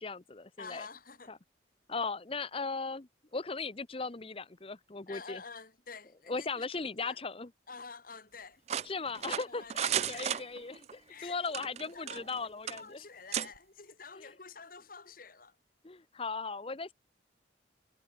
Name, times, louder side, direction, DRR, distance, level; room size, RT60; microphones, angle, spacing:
voice 1, 0.0-0.9 1.3-1.4 1.9-5.4 6.3-7.5 8.8-13.0 14.2-14.3 15.8-16.9, left 4 dB, 30° left, 0.8 m, -38 dB
voice 2, 0.6-1.3 5.1-6.7 7.0-7.2 7.7-8.6 9.5-10.4 11.1-11.5 11.9-12.3 12.8-15.6, left 5 dB, 50° left, 2.3 m, -48 dB
sound 1, 8.7-10.9 11.5-12.4 12.7-12.8 13.3-13.5, right 9 dB, 35° right, 0.3 m, -34 dB
head